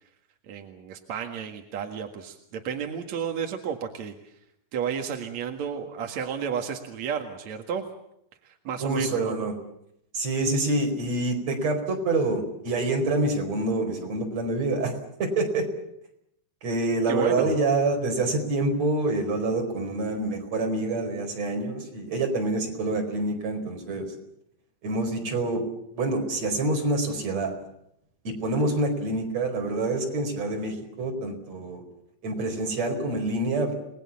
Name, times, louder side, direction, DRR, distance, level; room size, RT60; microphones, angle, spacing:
voice 1, 0.5-4.3 4.7-7.8 8.4-9.5 17.1-17.5, right 7 dB, 55° right, 4 dB, 2.2 m, -32 dB
voice 2, 8.8-9.5 10.1-15.7 16.6-24.1 24.8-25.6 25.9-27.5 28.2-31.8 32.2-33.7, right 2 dB, 35° right, 3 dB, 5.6 m, -26 dB
30.0 x 20.5 x 7.2 m, 0.77 s
omnidirectional pair, 5.3 m